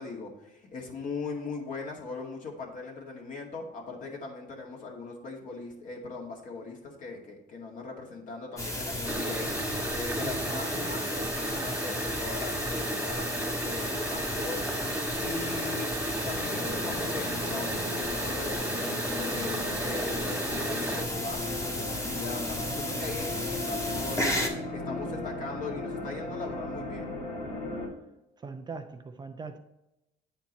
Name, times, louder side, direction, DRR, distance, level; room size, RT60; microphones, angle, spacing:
voice 1, 0.0-15.9 16.2-27.2, left 3 dB, 50° left, -1 dB, 2.1 m, -40 dB
sound 1, 8.6-24.5, left 1 dB, 20° left, 1.5 m, -34 dB
sound 2, 9.0-21.0, right 2 dB, 10° right, 1.2 m, -34 dB
voice 2, 10.2-10.9 28.4-29.6, right 4 dB, 25° right, 7 dB, 0.5 m, -41 dB
sound 3, 16.3-27.9, left 2 dB, 75° left, 2.6 m, -37 dB
8.9 x 4.4 x 4.1 m, 0.93 s
cardioid pair, 110°, 17 cm